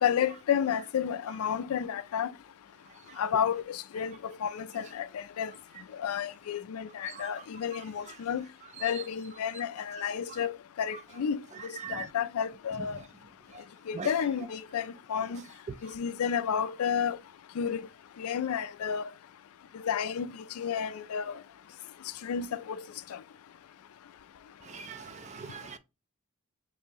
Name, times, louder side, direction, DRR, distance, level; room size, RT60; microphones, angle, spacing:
voice 1, 0.0-2.3 3.2-5.5 5.9-8.5 8.8-13.0 13.9-15.4 15.8-17.2 17.6-17.8 18.2-19.0 19.7-21.4 22.2-22.8 23.1-23.2, left 8 dB, 80° left, 0.4 m, -31 dB
voice 2, 24.7-25.8, right 6 dB, 30° right, 0.4 m, -40 dB
5.3 x 2.7 x 2.8 m
head